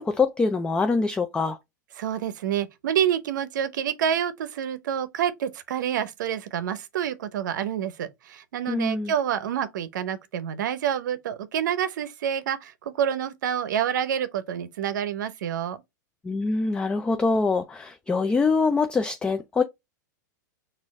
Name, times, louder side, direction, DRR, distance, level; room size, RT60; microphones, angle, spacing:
voice 1, 0.0-1.6 8.7-9.1 16.2-19.6, left 4 dB, 10° left, 0.3 m, -24 dB
voice 2, 2.0-15.8, right 9 dB, 75° right, 0.6 m, -28 dB
4.3 x 2.5 x 3.5 m
hypercardioid pair, 125°, 10 cm